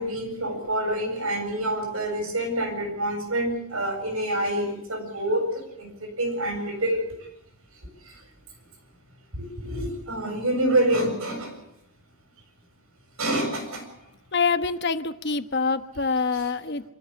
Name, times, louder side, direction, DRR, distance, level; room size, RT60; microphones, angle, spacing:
voice 1, 0.0-7.0 9.3-11.5 13.2-13.8, right 1 dB, 80° right, 5 dB, 7.2 m, -27 dB
voice 2, 14.3-16.8, left 4 dB, 50° left, 10 dB, 1.1 m, -25 dB
25.5 x 14.5 x 8.4 m, 0.84 s
head